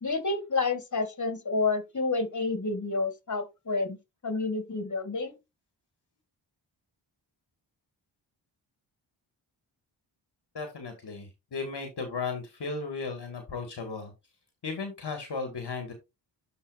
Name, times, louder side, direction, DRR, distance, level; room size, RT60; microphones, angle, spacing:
voice 1, 0.0-4.0 4.2-5.4, left 3 dB, 35° left, 2.2 m, -29 dB
voice 2, 10.5-14.1 14.6-15.9, left 4 dB, 55° left, 1.8 m, -35 dB
12.0 x 4.1 x 2.5 m
supercardioid pair, 40°, 48 cm